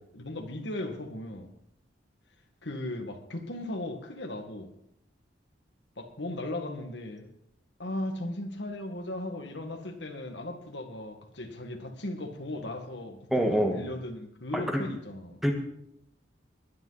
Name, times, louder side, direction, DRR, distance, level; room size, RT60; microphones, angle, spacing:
voice 1, 0.1-1.5 2.6-4.7 6.0-7.3 7.8-15.4, left 1 dB, 65° left, 5 dB, 1.9 m, -37 dB
voice 2, 13.3-13.8 14.5-14.8 15.4-15.5, equal, ahead, 3 dB, 1.6 m, -25 dB
21.0 x 10.5 x 4.1 m, 0.73 s
head